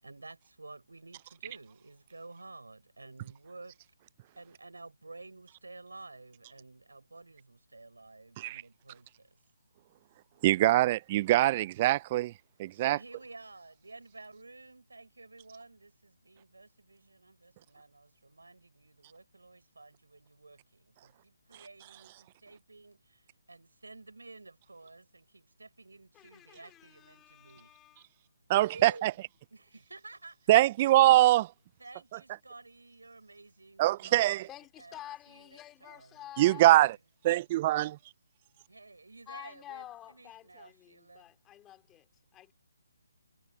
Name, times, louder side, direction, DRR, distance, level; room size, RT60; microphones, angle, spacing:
voice 1, 0.0-3.8 4.4-9.4 12.7-27.7 28.7-29.2 29.5-30.5 30.8-31.0 31.8-35.0 35.3-37.0 38.7-41.3, right 3 dB, 85° right, 7.0 m, -52 dB
voice 2, 10.4-12.3 12.6-13.0 28.5-29.1 30.5-31.5 33.8-34.5 36.4-36.9 37.2-38.0, right 16 dB, 30° right, 0.4 m, -23 dB
voice 3, 26.1-28.1 34.5-36.7 39.3-42.5, left 13 dB, 15° left, 3.3 m, -50 dB
figure-of-eight pair, 150°, 0 cm